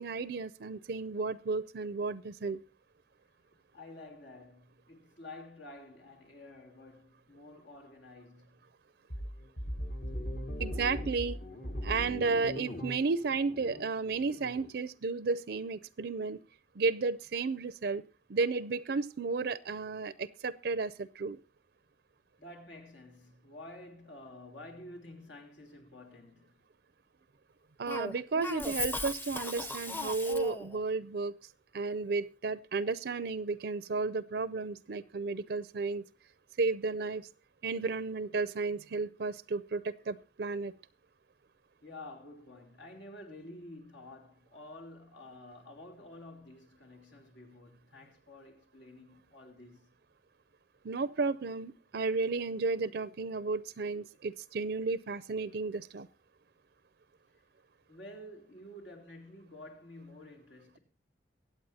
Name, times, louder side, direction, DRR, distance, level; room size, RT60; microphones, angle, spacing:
voice 1, 0.0-2.6 10.6-11.4 11.8-16.4 16.8-18.0 18.3-21.4 27.8-31.4 31.7-36.0 36.6-37.3 37.6-40.7 50.8-56.1, right 4 dB, 60° right, 0.5 m, -33 dB
voice 2, 3.7-8.6 22.4-26.6 41.8-49.9 57.9-60.8, left 1 dB, 85° left, 3.2 m, -50 dB
sound 1, 9.1-14.7, equal, 45° left, 1.2 m, -39 dB
Cough, 27.9-30.8, left 2 dB, 10° left, 0.6 m, -37 dB
23.0 x 8.3 x 2.7 m
head